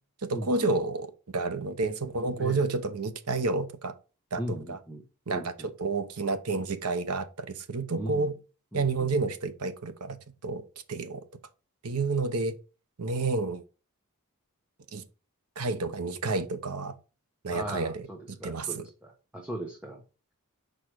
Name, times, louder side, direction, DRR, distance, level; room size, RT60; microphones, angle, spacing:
voice 1, 0.2-3.9 4.3-4.8 5.3-5.5 5.8-8.3 8.7-10.2 10.4-10.6 10.9-11.2 11.8-12.5 13.0-13.6 14.9-15.0 15.6-16.9 17.4-18.8, right 3 dB, 85° right, 0.9 m, -30 dB
voice 2, 2.3-2.7 4.4-5.7 7.9-8.3 8.7-9.1 17.5-20.0, right 1 dB, 5° right, 1.1 m, -38 dB
6.4 x 5.1 x 4.8 m
head